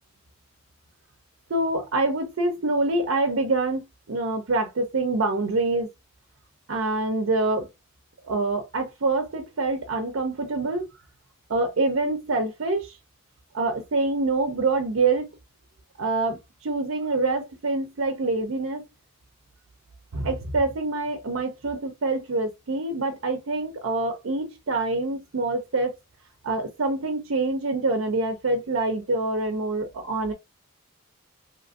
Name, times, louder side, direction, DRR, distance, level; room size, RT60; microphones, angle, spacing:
voice 1, 1.5-5.9 6.7-7.7 8.2-10.9 11.5-13.0 13.5-15.3 16.0-18.8 20.1-25.9 26.4-30.3, right 2 dB, 70° right, 0.5 m, -26 dB
2.8 x 2.5 x 2.5 m
head